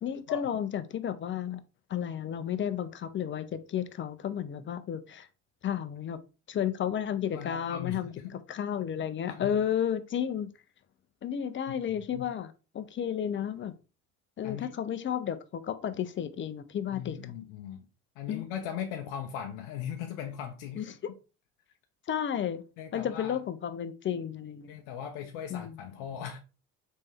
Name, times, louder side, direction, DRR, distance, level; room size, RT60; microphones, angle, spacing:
voice 1, 0.0-1.6 1.9-5.3 5.6-6.2 6.5-8.1 8.5-10.5 11.2-13.7 14.4-17.2 18.3-18.4 20.8-21.0 22.1-22.6 22.9-24.7 25.5-25.8, left 9 dB, 35° left, 0.6 m, -32 dB
voice 2, 7.3-8.4 9.3-9.6 11.7-11.8 12.1-12.3 14.4-14.7 16.9-17.9 18.2-20.9 22.8-23.4 24.7-26.4, left 9 dB, 75° left, 0.7 m, -39 dB
4.3 x 3.3 x 3.4 m
hypercardioid pair, 75°, 36 cm